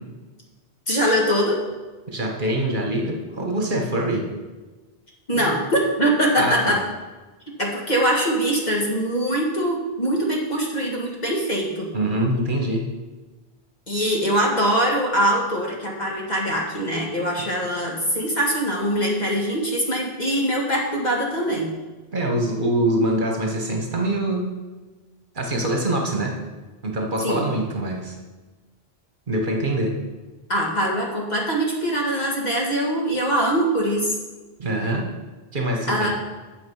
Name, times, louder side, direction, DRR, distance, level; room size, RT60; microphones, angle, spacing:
voice 1, 0.9-1.6 5.3-6.8 7.6-11.9 13.9-21.7 27.2-27.4 30.5-34.2 35.9-36.1, right 1 dB, 45° left, -2 dB, 2.0 m, -22 dB
voice 2, 2.1-4.3 5.3-5.5 6.4-6.8 11.9-12.9 22.1-24.6 25.3-26.4 26.8-28.2 29.3-30.0 34.6-35.1 35.5-36.1, right 1 dB, 55° right, 2 dB, 1.4 m, -24 dB
8.9 x 7.1 x 5.5 m, 1.2 s
omnidirectional pair, 1.0 m